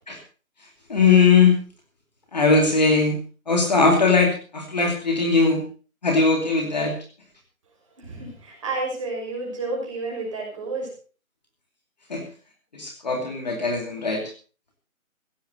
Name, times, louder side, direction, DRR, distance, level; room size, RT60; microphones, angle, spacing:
voice 1, 0.9-1.5 2.3-3.2 3.5-5.6 6.0-7.0 12.1-12.2 12.7-14.2, left 4 dB, 30° left, 2 dB, 2.5 m, -19 dB
voice 2, 8.0-10.9, right 3 dB, 20° right, -1 dB, 6.1 m, -30 dB
16.5 x 13.5 x 4.1 m, 0.37 s
figure-of-eight pair, 175°, 42 cm